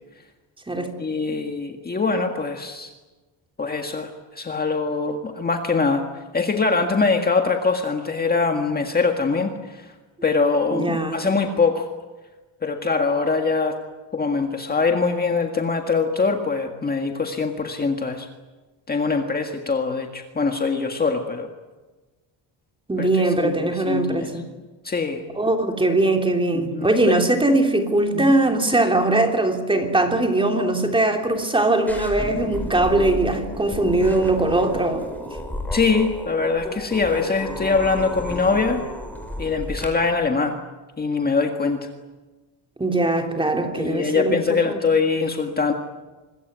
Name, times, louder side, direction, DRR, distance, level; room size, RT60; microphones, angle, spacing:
voice 1, 1.0-2.9 3.6-9.9 10.2-11.9 12.6-13.8 14.1-18.3 18.9-21.5 23.0-23.1 23.4-24.3 24.8-25.3 26.5-27.2 28.1-28.3 35.7-38.8 39.4-40.6 41.0-41.9 43.8-45.7, left 4 dB, 20° left, 1.8 m, -23 dB
voice 2, 10.7-11.2 22.9-24.4 25.4-35.1 42.8-44.8, right 2 dB, 10° right, 3.2 m, -21 dB
sound 1, 31.9-39.9, left 1 dB, 5° left, 5.2 m, -32 dB
25.5 x 22.0 x 9.4 m
cardioid pair, 150°, 43 cm